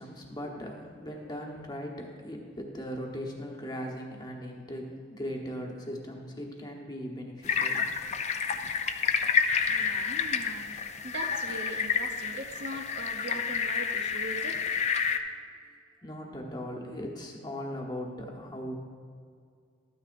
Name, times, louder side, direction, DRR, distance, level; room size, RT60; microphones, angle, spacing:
voice 1, 0.0-7.8 16.0-18.7, equal, 20° left, 0 dB, 1.1 m, -39 dB
sound 1, 7.4-15.2, left 6 dB, 40° left, 0.4 m, -29 dB
voice 2, 9.6-10.8 11.0-14.7, right 2 dB, 75° right, 5 dB, 0.6 m, -40 dB
12.5 x 9.4 x 2.5 m, 2.2 s
head